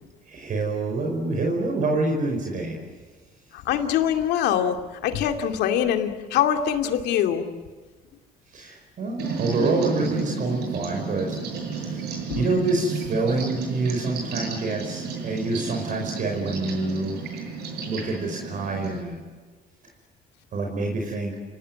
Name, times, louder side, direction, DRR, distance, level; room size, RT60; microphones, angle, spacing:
voice 1, 0.2-2.8 8.5-12.1 12.3-17.2 17.8-19.2 20.5-21.4, right 3 dB, 50° right, 1 dB, 5.1 m, -27 dB
voice 2, 3.7-7.4 12.3-12.4, left 9 dB, 85° left, 5 dB, 2.5 m, -23 dB
sound 1, 9.2-19.0, right 5 dB, 75° right, 7.9 m, -32 dB
29.5 x 19.0 x 9.5 m, 1.4 s
cardioid pair, 110°, 17 cm